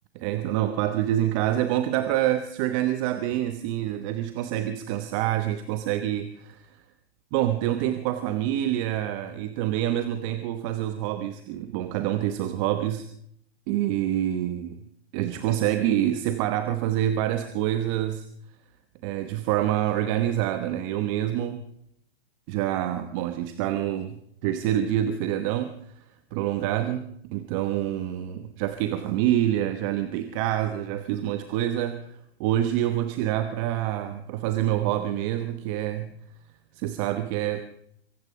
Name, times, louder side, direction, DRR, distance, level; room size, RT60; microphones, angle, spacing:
voice 1, 0.1-6.6 7.3-13.1 13.7-14.8 15.1-18.3 19.0-21.6 22.5-25.9 26.3-36.1 36.7-37.6, right 12 dB, 30° right, 10 dB, 1.1 m, -27 dB
24.0 x 11.0 x 4.9 m, 0.68 s
hypercardioid pair, 150°, 32 cm